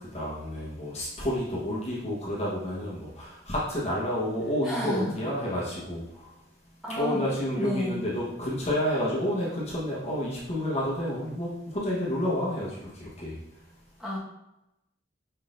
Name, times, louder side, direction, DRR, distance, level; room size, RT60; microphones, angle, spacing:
voice 1, 0.0-6.3 7.0-13.4, equal, 35° left, -7 dB, 1.1 m, -30 dB
voice 2, 4.6-5.2 6.8-7.2 7.6-8.0 14.0-14.2, left 1 dB, 5° right, -8 dB, 1.3 m, -30 dB
5.5 x 3.8 x 2.5 m, 0.89 s
head